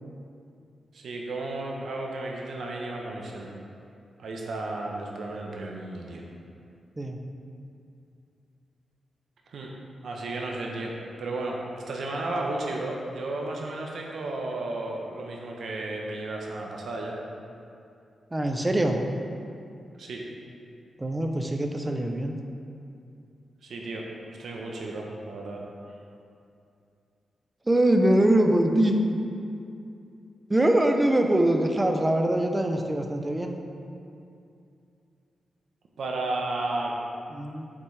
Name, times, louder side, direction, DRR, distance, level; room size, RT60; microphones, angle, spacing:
voice 1, 0.9-3.5 4.2-6.2 9.5-9.7 10.0-10.9 11.2-17.2 20.0-20.2 23.6-25.6 36.0-36.9, right 2 dB, 70° right, -1 dB, 0.8 m, -33 dB
voice 2, 18.3-19.0 21.0-22.4 27.7-29.0 30.5-33.6 37.3-37.7, right 1 dB, 15° right, 4 dB, 0.5 m, -23 dB
8.0 x 5.9 x 3.3 m, 2.6 s
wide cardioid pair, 140°, 0 cm